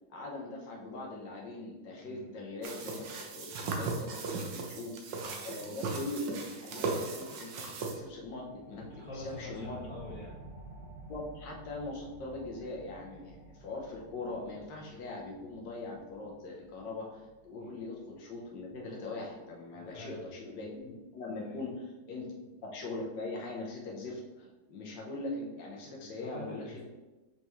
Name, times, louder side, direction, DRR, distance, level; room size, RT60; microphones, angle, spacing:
voice 1, 0.1-4.2 4.5-4.9 5.4-8.8 9.1-9.7 10.8-22.3 22.6-26.8, left 2 dB, 80° left, -2 dB, 1.6 m, -41 dB
voice 2, 2.0-2.3 5.2-5.4 8.8-10.4 17.6-17.7 19.7-20.6 21.3-21.6 26.0-26.8, left 2 dB, 25° left, -7 dB, 2.1 m, -47 dB
sound 1, 2.6-8.0, right 4 dB, 85° right, 1.5 m, -37 dB
sound 2, 8.0-19.1, right 1 dB, 50° right, 2.3 m, -52 dB
5.9 x 5.6 x 3.1 m, 1.1 s
omnidirectional pair, 1.9 m